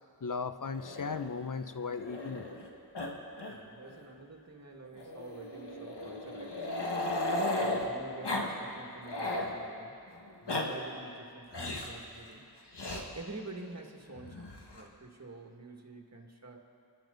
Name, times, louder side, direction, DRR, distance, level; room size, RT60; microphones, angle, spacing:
voice 1, 0.2-2.5, left 5 dB, 50° left, 10 dB, 0.7 m, -36 dB
Growling, 0.8-2.7 2.9-3.1 3.4-3.5 3.9-4.0 5.0-7.8 8.2-8.5 8.8-9.5 10.2-10.6 11.5-12.0 12.7-13.0 14.2-14.8, left 1 dB, 85° left, 1.7 m, -35 dB
voice 2, 3.5-6.9 7.6-10.0 10.4-12.4 12.9-16.6, right 3 dB, 40° right, 2 dB, 2.0 m, -48 dB
29.0 x 11.0 x 4.0 m, 2.6 s
wide cardioid pair, 55°, 40 cm